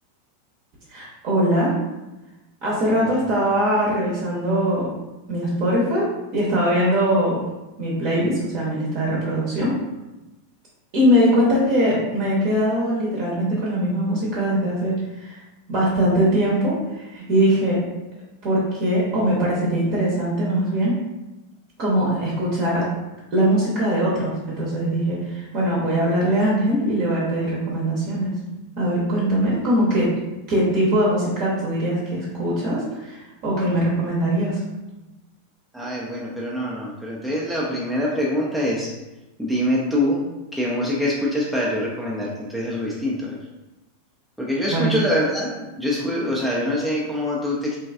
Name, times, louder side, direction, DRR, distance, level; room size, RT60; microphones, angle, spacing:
voice 1, 0.9-1.8 2.6-4.9 5.3-6.1 6.3-7.4 7.8-9.8 10.9-15.4 15.7-17.8 18.4-20.9 21.8-22.8 23.3-28.4 28.8-30.1 30.5-34.6 44.7-44.9, equal, 40° right, -6 dB, 0.7 m, -21 dB
voice 2, 35.7-38.9 39.4-40.2 40.5-43.4 44.4-47.8, left 1 dB, 5° right, -5 dB, 0.4 m, -24 dB
3.2 x 2.3 x 2.3 m, 1.0 s
figure-of-eight pair, 90°, 0 cm